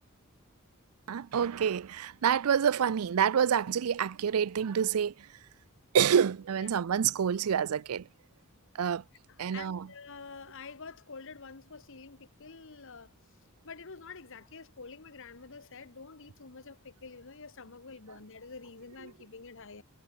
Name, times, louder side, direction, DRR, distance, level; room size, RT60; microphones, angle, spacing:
voice 1, 1.1-5.3 5.9-8.1 8.8-9.0 9.4-9.9, right 8 dB, 90° right, 0.4 m, -27 dB
voice 2, 9.3-13.1 13.6-19.8, left 4 dB, 65° left, 1.4 m, -48 dB
head